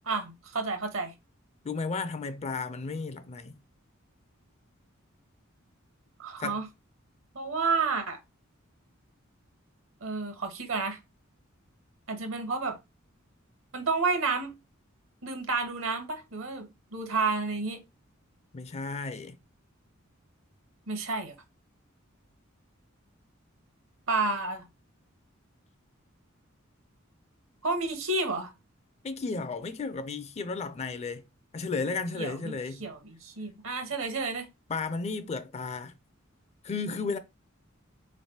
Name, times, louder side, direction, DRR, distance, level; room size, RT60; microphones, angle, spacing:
voice 1, 0.1-1.1 6.2-6.7 7.3-8.2 10.0-11.0 12.1-12.8 13.7-14.5 15.2-17.8 20.9-21.3 24.1-24.6 27.6-28.5 31.8-34.5, right 4 dB, 65° right, 1.0 m, -30 dB
voice 2, 1.6-3.6 6.4-6.6 18.5-19.4 29.0-31.2 31.5-32.9 34.7-35.9 36.6-37.2, left 4 dB, 30° left, 0.4 m, -33 dB
3.8 x 3.2 x 2.7 m
head